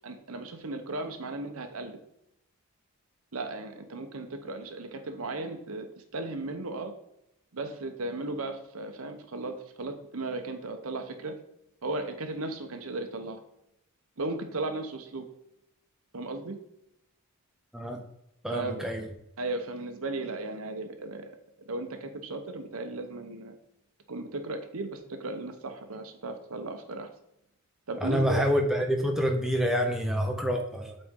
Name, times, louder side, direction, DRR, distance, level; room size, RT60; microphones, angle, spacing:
voice 1, 0.0-2.0 3.3-5.9 6.1-6.9 7.5-11.3 11.8-13.4 14.2-15.2 16.1-16.6 18.5-18.8 19.4-21.3 21.7-23.5 24.1-27.1 27.9-28.4, right 2 dB, 80° right, 6 dB, 0.9 m, -36 dB
voice 2, 18.4-19.1 28.0-31.0, equal, ahead, 2 dB, 0.7 m, -27 dB
7.9 x 4.3 x 3.7 m, 0.82 s
head